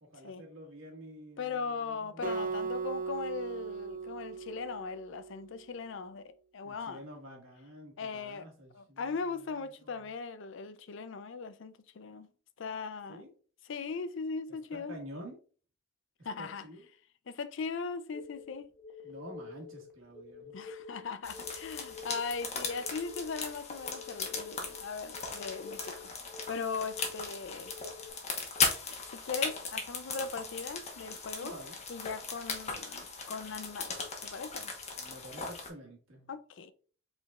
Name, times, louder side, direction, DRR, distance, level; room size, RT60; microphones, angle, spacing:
voice 1, 0.0-2.5 6.6-10.1 13.1-13.3 14.7-15.4 16.4-16.9 19.0-20.5 31.4-31.8 35.0-36.3, equal, 90° right, 1.6 m, -49 dB
voice 2, 1.4-7.0 8.0-8.5 8.7-12.3 12.6-13.2 13.7-15.0 16.2-16.7 17.3-18.7 20.5-26.1 26.5-27.7 29.1-31.5 31.9-34.0 34.2-34.7 36.3-36.7, left 5 dB, 70° left, 0.5 m, -39 dB
Acoustic guitar, 2.2-5.5, right 4 dB, 45° right, 0.8 m, -37 dB
sound 1, 18.1-28.1, left 4 dB, 5° left, 1.0 m, -48 dB
sound 2, 21.2-35.7, left 4 dB, 35° left, 1.1 m, -38 dB
5.1 x 3.9 x 2.4 m
head